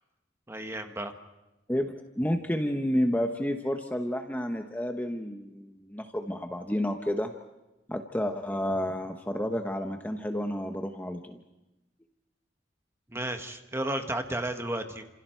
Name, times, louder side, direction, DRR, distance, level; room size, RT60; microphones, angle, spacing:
voice 1, 0.5-1.1 13.1-15.0, right 1 dB, 15° right, 5 dB, 1.5 m, -33 dB
voice 2, 1.7-7.3 7.9-11.4, equal, 10° left, 4 dB, 1.0 m, -30 dB
30.0 x 27.5 x 4.6 m, 0.98 s
head